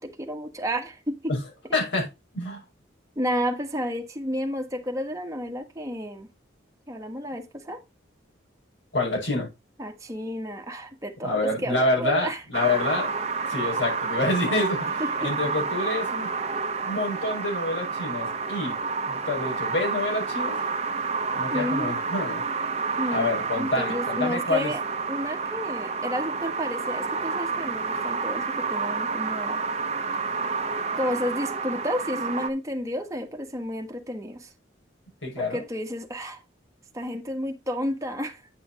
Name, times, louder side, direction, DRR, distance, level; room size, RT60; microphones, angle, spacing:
voice 1, 0.0-1.3 3.1-6.3 6.9-7.8 9.8-12.4 12.7-12.8 15.0-15.3 21.5-22.0 23.0-23.3 23.5-24.8 25.1-29.6 30.9-34.5 35.4-36.4 36.9-38.4, equal, 15° right, 1.3 m, -31 dB
voice 2, 1.7-2.1 2.3-2.6 8.9-9.5 11.2-13.1 13.5-16.3 16.8-18.8 19.1-20.6 21.3-22.4 23.1-24.7 35.2-35.6, left 2 dB, 80° left, 6.2 m, -27 dB
sound 1, 12.5-32.5, right 4 dB, 35° right, 0.9 m, -29 dB
9.4 x 5.7 x 4.1 m
head